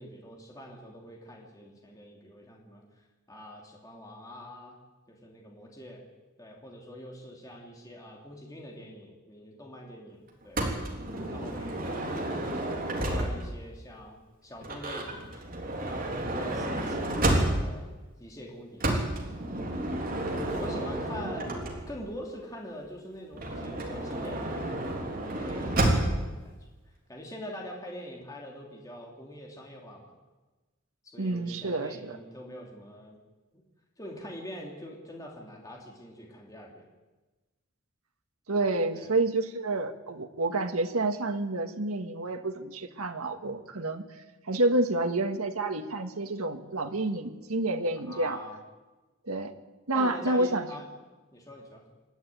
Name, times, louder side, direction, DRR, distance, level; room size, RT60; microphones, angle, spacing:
voice 1, 0.0-4.8 5.1-6.0 6.4-10.6 11.3-17.9 18.2-19.7 20.3-24.8 25.1-26.6 26.8-30.1 31.0-33.2 33.5-33.6 34.0-36.9 38.9-39.1 48.1-48.6 49.9-51.0 51.3-51.8, equal, 15° left, -1 dB, 3.0 m, -44 dB
Motor vehicle (road) / Sliding door, 10.6-13.6 14.6-17.9 18.8-22.1 23.3-26.3, right 1 dB, 40° right, 3.6 m, -30 dB
voice 2, 31.2-32.2 38.5-44.0 44.5-48.4 49.3-49.5 49.9-50.7, right 2 dB, 90° right, 6 dB, 1.7 m, -29 dB
27.0 x 11.5 x 9.4 m, 1.2 s
head